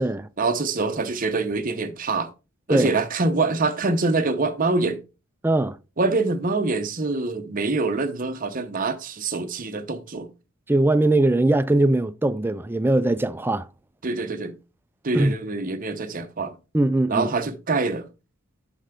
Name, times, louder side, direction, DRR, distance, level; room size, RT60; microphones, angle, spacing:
voice 1, 0.4-2.3 2.7-5.0 6.0-10.3 14.0-14.5 15.0-16.5 17.1-18.1, right 3 dB, 40° right, 0.9 m, -25 dB
voice 2, 5.4-5.8 10.7-13.7 15.1-15.3 16.7-17.3, right 2 dB, 10° right, 0.3 m, -20 dB
8.1 x 5.6 x 3.7 m
head